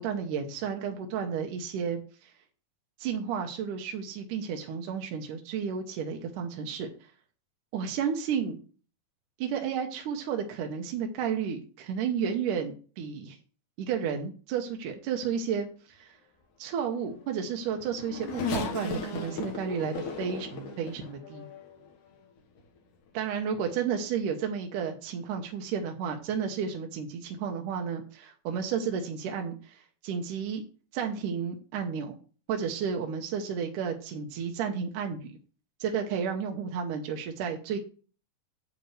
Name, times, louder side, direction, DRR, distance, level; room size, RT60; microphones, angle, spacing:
voice 1, 0.0-2.3 3.0-6.9 7.7-8.6 9.4-13.4 13.8-16.2 16.6-21.5 23.1-30.6 30.9-32.2 32.5-35.4 35.8-37.8, right 7 dB, 80° right, 3 dB, 2.5 m, -32 dB
Race car auto racing / Accelerating revving vroom, 17.3-21.9 22.6-22.7 23.8-24.0, left 4 dB, 75° left, 2.8 m, -36 dB
9.2 x 8.0 x 3.2 m, 0.38 s
omnidirectional pair, 3.7 m